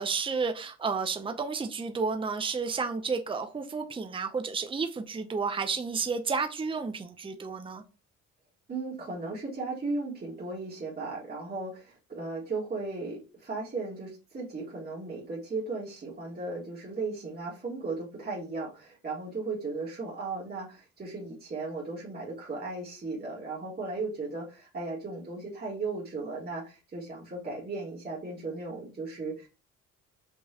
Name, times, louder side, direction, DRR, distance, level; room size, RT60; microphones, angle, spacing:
voice 1, 0.0-7.8, right 5 dB, 15° right, 0.6 m, -31 dB
voice 2, 8.7-29.5, right 3 dB, 30° right, 2.0 m, -36 dB
5.6 x 3.0 x 2.9 m
cardioid pair, 90°, 30 cm